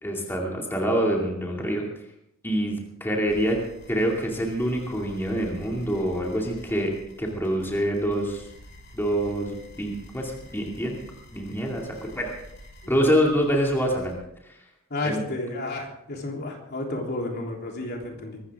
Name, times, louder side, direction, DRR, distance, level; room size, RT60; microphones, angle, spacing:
voice 1, 0.0-1.8 2.4-3.6 3.9-6.9 7.2-8.5 8.9-11.0 11.3-12.3 12.9-14.2 14.4-14.6 15.0-15.2, equal, 10° left, -1 dB, 2.5 m, -26 dB
sound 1, 3.3-14.1, left 1 dB, 65° left, 6.6 m, -48 dB
voice 2, 14.9-18.4, left 2 dB, 50° left, 0 dB, 3.5 m, -31 dB
23.5 x 13.5 x 3.7 m, 0.79 s
head